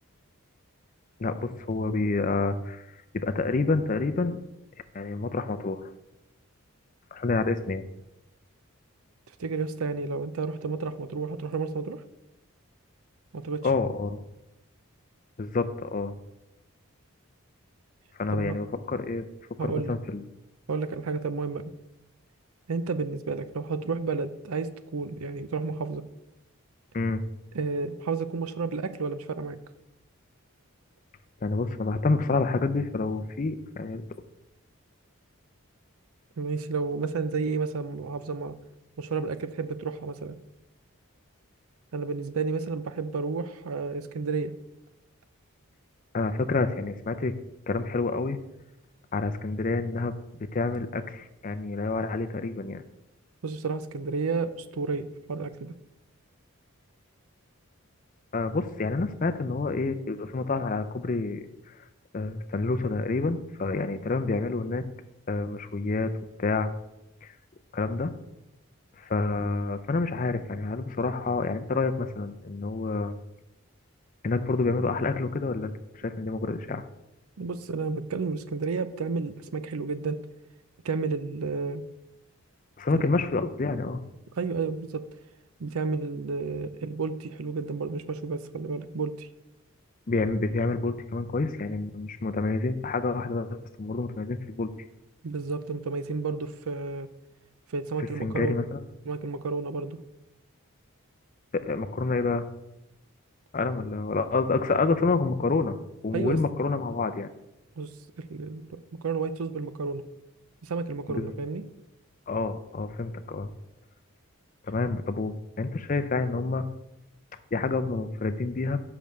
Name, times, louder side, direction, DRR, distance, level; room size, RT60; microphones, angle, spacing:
voice 1, 1.2-2.8 3.1-4.4 4.9-5.9 7.1-7.8 13.6-14.2 15.4-16.1 18.2-19.3 19.6-20.2 26.9-27.2 31.4-34.0 46.1-47.3 47.7-48.4 49.1-50.1 50.5-52.8 58.3-61.7 62.1-64.8 65.3-66.1 66.4-66.7 67.2-67.3 67.7-68.1 69.0-73.2 74.2-76.8 82.8-84.0 90.1-94.7 98.2-98.8 101.5-102.5 103.5-105.8 106.0-107.3 111.1-111.3 112.3-113.5 114.7-116.7 117.5-118.8, left 3 dB, 35° left, 9 dB, 0.4 m, -28 dB
voice 2, 9.4-12.0 13.3-13.7 18.3-18.6 19.6-19.9 20.7-21.6 22.7-26.0 27.5-29.6 36.4-38.5 39.0-40.4 41.9-44.5 53.4-55.7 77.4-80.2 80.8-81.8 82.9-83.0 84.4-85.0 85.6-89.3 95.2-97.1 97.7-98.6 99.1-100.0 106.1-106.4 107.8-110.0 110.6-111.6, right 4 dB, 75° right, 12 dB, 0.5 m, -31 dB
6.0 x 5.2 x 6.7 m, 0.90 s
head